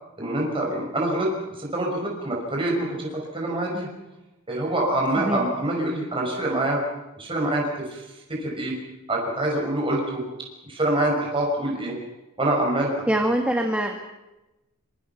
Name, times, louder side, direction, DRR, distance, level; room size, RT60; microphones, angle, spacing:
voice 1, 0.2-1.3 1.6-3.9 4.5-6.8 7.2-8.0 8.3-8.7 9.1-10.2 10.6-11.9 12.4-12.9, right 1 dB, 25° right, -2 dB, 6.0 m, -25 dB
voice 2, 13.1-14.2, right 1 dB, 5° right, 3 dB, 1.8 m, -24 dB
26.5 x 24.5 x 5.9 m, 1.0 s
head